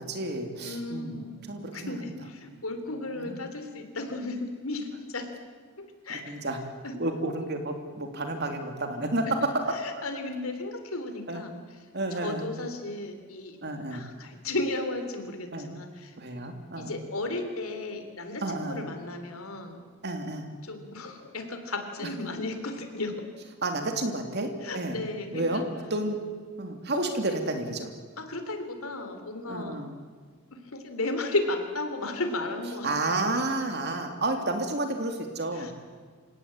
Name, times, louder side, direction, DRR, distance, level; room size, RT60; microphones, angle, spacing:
voice 1, 0.0-1.2 1.5-2.1 3.2-3.4 6.3-6.6 7.0-9.7 11.3-11.4 11.9-12.5 13.6-14.1 15.5-15.7 16.2-16.9 18.4-18.9 20.0-20.5 23.6-25.0 25.3-25.6 25.9-26.2 26.6-27.9 29.5-29.9 32.8-35.7, right 2 dB, 50° right, 5 dB, 3.0 m, -31 dB
voice 2, 0.6-1.4 1.7-5.3 5.8-6.4 6.8-7.0 9.7-11.5 12.1-13.6 13.9-16.1 16.8-19.8 20.6-23.3 24.6-25.7 26.9-27.1 28.2-29.8 30.5-32.9 35.5-35.7, left 2 dB, 80° left, 7 dB, 3.2 m, -34 dB
28.0 x 17.0 x 8.7 m, 1.6 s
head